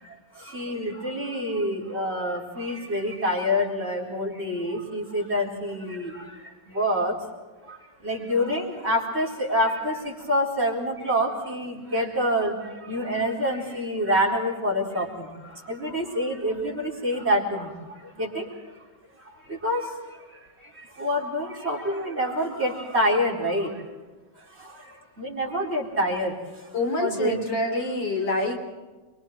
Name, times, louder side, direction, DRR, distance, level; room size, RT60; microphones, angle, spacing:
voice 1, 0.0-7.2 7.6-18.6 19.2-23.9 24.4-27.5, equal, 35° right, 0 dB, 4.7 m, -27 dB
voice 2, 26.7-28.6, left 2 dB, 85° left, 3 dB, 4.1 m, -26 dB
28.5 x 24.0 x 4.6 m, 1.2 s
omnidirectional pair, 1.9 m